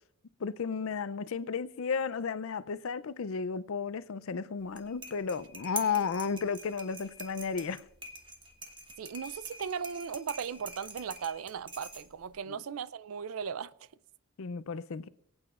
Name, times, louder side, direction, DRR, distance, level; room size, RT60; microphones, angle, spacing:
voice 1, 0.4-7.8 12.5-12.6 14.4-15.1, left 5 dB, 70° left, 0.5 m, -33 dB
sound 1, 4.6-12.3, right 3 dB, 20° right, 1.3 m, -46 dB
voice 2, 9.0-13.9, right 7 dB, 75° right, 0.4 m, -37 dB
22.0 x 8.8 x 2.5 m
head